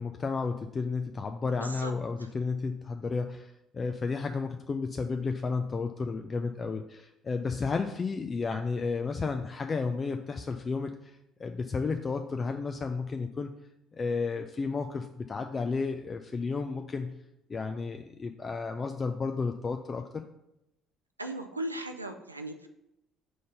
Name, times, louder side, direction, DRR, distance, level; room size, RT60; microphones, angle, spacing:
voice 1, 0.0-13.5 13.9-17.2 17.5-20.2, left 4 dB, 30° left, 6 dB, 0.4 m, -32 dB
voice 2, 1.6-1.9 2.2-2.3 21.2-22.7, right 1 dB, 90° right, 5 dB, 0.4 m, -37 dB
5.1 x 3.9 x 5.5 m, 0.85 s
figure-of-eight pair, 55°, 0 cm